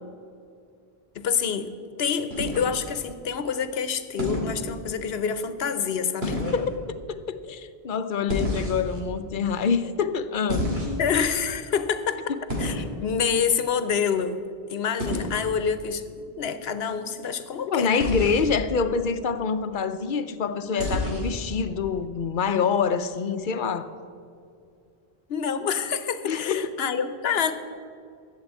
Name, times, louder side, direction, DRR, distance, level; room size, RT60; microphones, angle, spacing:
voice 1, 1.1-1.7 2.0-6.4 11.0-12.2 12.6-18.0 25.3-27.5, left 6 dB, 80° left, 1.0 m, -27 dB
sound 1, 2.3-3.0 4.2-4.5 6.2-6.6 8.3-9.0 10.5-11.2 12.5-12.8 15.0-15.3 18.0-18.5 20.8-21.4, left 1 dB, 80° right, 2.5 m, -29 dB
voice 2, 6.2-11.1 17.7-23.9 26.2-26.7, left 6 dB, 60° left, 0.8 m, -26 dB
12.5 x 7.4 x 8.2 m
omnidirectional pair, 1.0 m